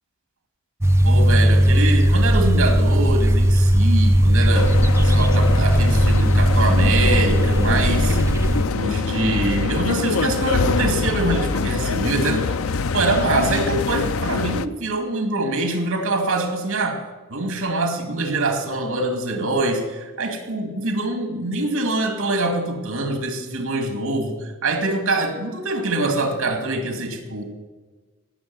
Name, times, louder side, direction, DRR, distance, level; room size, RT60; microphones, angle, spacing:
sound 1, 0.8-8.6, equal, 15° right, 0.8 m, -17 dB
voice 1, 1.0-4.8 5.0-8.2 8.7-12.5 12.9-17.0 17.3-27.4, right 2 dB, 80° right, 4 dB, 2.5 m, -24 dB
sound 2, 4.5-14.7, left 4 dB, 80° left, 0.6 m, -24 dB
17.5 x 6.3 x 9.6 m, 1.3 s
head